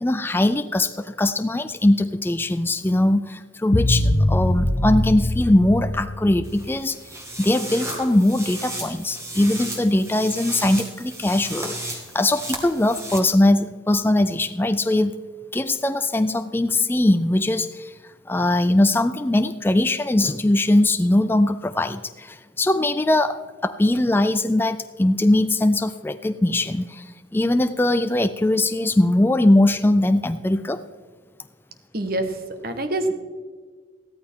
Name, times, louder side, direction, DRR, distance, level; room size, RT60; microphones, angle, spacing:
voice 1, 0.0-7.0 7.4-15.2 15.5-17.9 18.3-30.8, left 1 dB, 10° left, 10 dB, 0.3 m, -21 dB
sound 1, 3.7-6.8, left 1 dB, 40° left, 0.8 m, -22 dB
sound 2, 6.4-13.2, right 1 dB, 15° right, 1.8 m, -34 dB
voice 2, 31.9-32.4 32.6-33.1, right 1 dB, 50° right, 7 dB, 1.3 m, -25 dB
15.0 x 13.5 x 3.7 m, 1.5 s
head